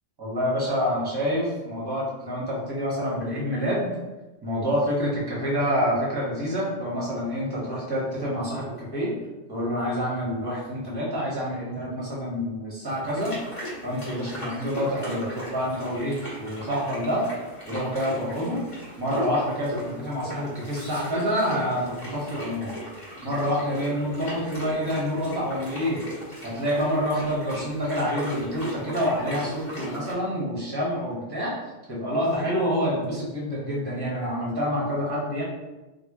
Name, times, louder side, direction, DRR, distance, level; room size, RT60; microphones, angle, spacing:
voice 1, 0.2-3.9 4.4-9.1 9.5-13.4 13.8-17.2 17.7-18.6 19.0-22.7 23.2-26.0 26.4-31.6 31.9-35.4, equal, 20° right, -5 dB, 1.1 m, -27 dB
sound 1, 13.0-30.1, equal, 30° left, 1.3 m, -38 dB
3.3 x 2.3 x 3.6 m, 1.1 s
omnidirectional pair, 1.1 m